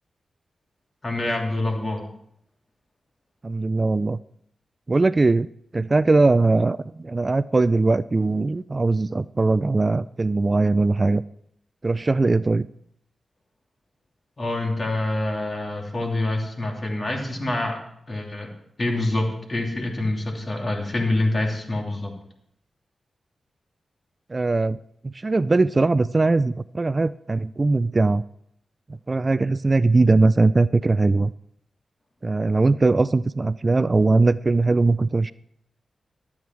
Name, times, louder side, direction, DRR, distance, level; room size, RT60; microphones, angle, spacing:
voice 1, 1.0-2.0 14.4-17.8 18.1-18.5 18.8-22.1, left 2 dB, 40° left, 1 dB, 2.9 m, -26 dB
voice 2, 3.4-4.2 4.9-5.5 5.7-11.2 11.8-12.7 24.3-24.8 25.0-28.2 29.1-31.3 32.2-35.3, right 3 dB, 35° right, 17 dB, 0.3 m, -20 dB
12.5 x 8.6 x 4.6 m, 0.71 s
cardioid pair, 55°, 0 cm